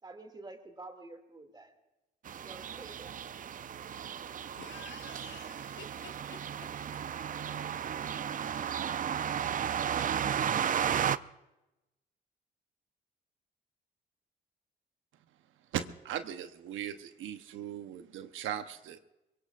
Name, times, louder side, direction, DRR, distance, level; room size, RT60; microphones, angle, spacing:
voice 1, 0.0-1.7 2.3-3.2, right 2 dB, 20° right, 2.4 m, -49 dB
sound 1, 2.2-11.2, right 8 dB, 45° right, 0.5 m, -34 dB
voice 2, 4.6-7.0, left 7 dB, 70° left, 1.4 m, -51 dB
voice 3, 15.7-19.0, right 10 dB, 85° right, 1.0 m, -38 dB
24.5 x 22.5 x 2.5 m
cardioid pair, 90°, 20 cm